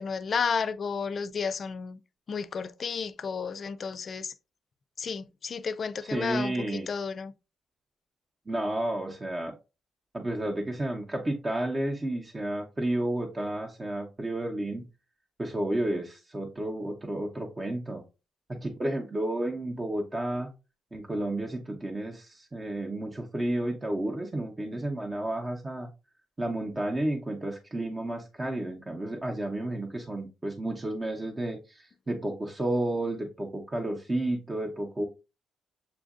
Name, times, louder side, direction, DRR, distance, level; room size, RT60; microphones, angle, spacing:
voice 1, 0.0-2.0 2.3-4.3 5.0-7.3, left 5 dB, 45° left, 0.4 m, -32 dB
voice 2, 6.0-6.9 8.5-9.5 10.1-14.8 15.4-18.0 18.5-20.5 20.9-25.9 26.4-35.0, right 1 dB, 20° right, 0.8 m, -31 dB
7.0 x 2.5 x 2.4 m
cardioid pair, 90°, 0 cm